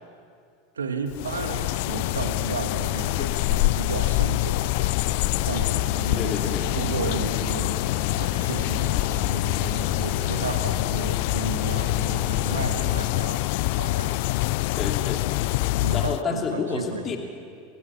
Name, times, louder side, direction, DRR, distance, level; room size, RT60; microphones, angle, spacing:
voice 1, 0.8-6.3 6.7-14.4 15.8-17.0, right 5 dB, 75° right, 6 dB, 2.2 m, -34 dB
sound 1, 1.1-16.2, left 20 dB, 55° left, 0.5 m, -25 dB
sound 2, 5.1-13.1, right 3 dB, 15° right, 3.0 m, -39 dB
voice 2, 6.2-6.7 14.8-15.2 15.9-17.2, left 5 dB, 30° left, 2 dB, 2.9 m, -29 dB
29.5 x 23.5 x 5.9 m, 2.4 s
figure-of-eight pair, 80°, 0 cm